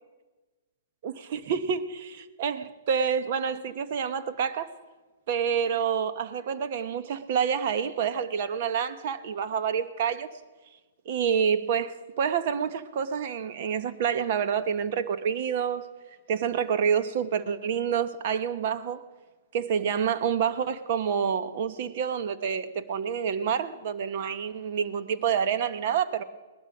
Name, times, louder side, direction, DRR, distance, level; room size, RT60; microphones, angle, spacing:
voice 1, 1.0-4.7 5.3-10.3 11.0-15.9 16.3-19.1 19.5-26.2, right 7 dB, 55° right, 1.1 m, -28 dB
19.0 x 12.0 x 6.1 m
hypercardioid pair, 135°, 0 cm